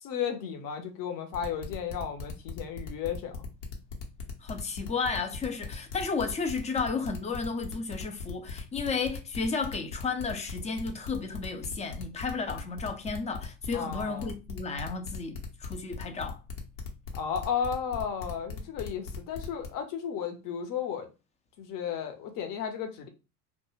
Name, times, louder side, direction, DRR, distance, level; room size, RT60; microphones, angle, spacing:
voice 1, 0.0-3.4 13.7-14.3 17.1-21.1 21.6-23.1, left 7 dB, 45° left, 0.8 m, -34 dB
sound 1, 1.3-19.7, left 5 dB, 70° left, 1.0 m, -39 dB
voice 2, 4.4-16.4, left 4 dB, 15° left, 0.3 m, -33 dB
2.3 x 2.2 x 3.1 m
hypercardioid pair, 75°, 46 cm